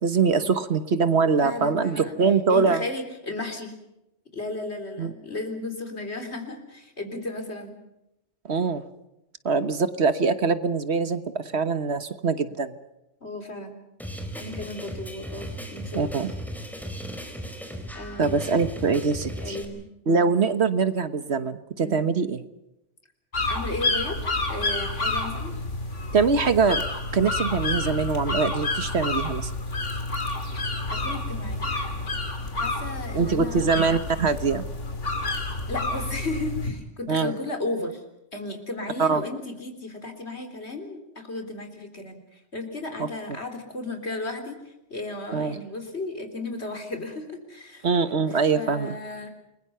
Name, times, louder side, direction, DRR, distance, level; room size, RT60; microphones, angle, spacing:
voice 1, 0.0-2.8 5.0-5.1 8.5-8.8 9.4-12.7 15.9-16.3 18.2-19.6 20.1-22.4 26.1-26.8 27.1-29.5 33.1-34.6 37.1-37.3 39.0-39.2 43.0-43.1 45.3-45.6 47.8-49.0, right 4 dB, 65° right, 12 dB, 1.5 m, -23 dB
voice 2, 1.4-2.2 2.5-3.7 4.3-7.8 13.2-13.8 14.3-16.1 17.9-18.6 19.4-19.8 21.8-22.0 23.5-24.2 24.5-25.5 30.9-31.7 32.5-33.7 35.7-38.0 38.3-47.9 48.3-49.3, left 2 dB, 65° left, 6 dB, 4.1 m, -34 dB
sound 1, 14.0-19.6, equal, ahead, 4.3 m, -36 dB
sound 2, 23.3-36.7, left 2 dB, 80° left, 3.1 m, -29 dB
29.0 x 21.5 x 5.7 m, 0.89 s
omnidirectional pair, 1.2 m